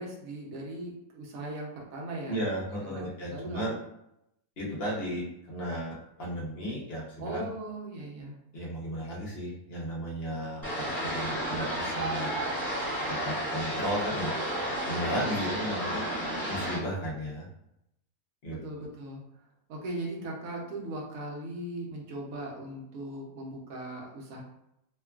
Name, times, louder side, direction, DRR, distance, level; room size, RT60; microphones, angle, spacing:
voice 1, 0.0-2.4 2.8-3.8 7.2-8.4 18.5-19.2 19.7-24.4, right 1 dB, 70° right, -1 dB, 1.1 m, -39 dB
voice 2, 2.3-3.7 4.6-7.5 8.5-10.6 11.0-12.3 13.1-14.3 14.9-16.0 16.5-17.5 18.4-18.9, equal, 50° left, -5 dB, 0.9 m, -34 dB
sound 1, 10.6-16.8, right 1 dB, 30° left, 1.5 m, -32 dB
2.9 x 2.3 x 2.3 m, 0.81 s
omnidirectional pair, 1.6 m